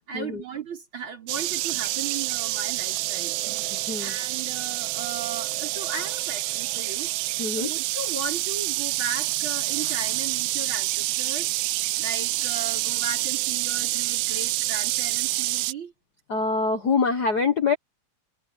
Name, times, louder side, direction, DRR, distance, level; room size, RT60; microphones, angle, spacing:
voice 1, 0.0-3.4 4.0-7.1 7.6-11.5 12.0-15.9, right 5 dB, 35° right, 5.0 m, -36 dB
sound 1, 1.3-15.7, right 19 dB, 80° right, 1.8 m, -27 dB
voice 2, 3.7-4.2 7.4-7.7 16.3-17.8, left 4 dB, 70° left, 0.9 m, -25 dB
omnidirectional pair, 4.1 m